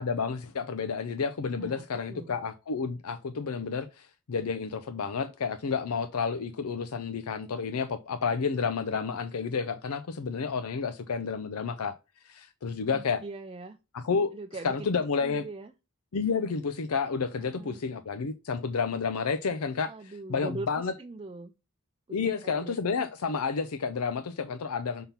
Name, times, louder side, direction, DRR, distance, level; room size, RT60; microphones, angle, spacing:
voice 1, 0.0-11.9 12.2-13.2 13.9-14.4 14.6-15.4 16.1-19.9 20.3-20.9 22.1-25.1, left 5 dB, 85° left, 0.6 m, -30 dB
voice 2, 1.6-2.3 12.9-13.8 14.3-14.9 15.2-15.7 17.6-17.8 19.9-21.5 22.1-22.8, right 3 dB, 25° right, 0.4 m, -41 dB
5.7 x 3.6 x 5.7 m
head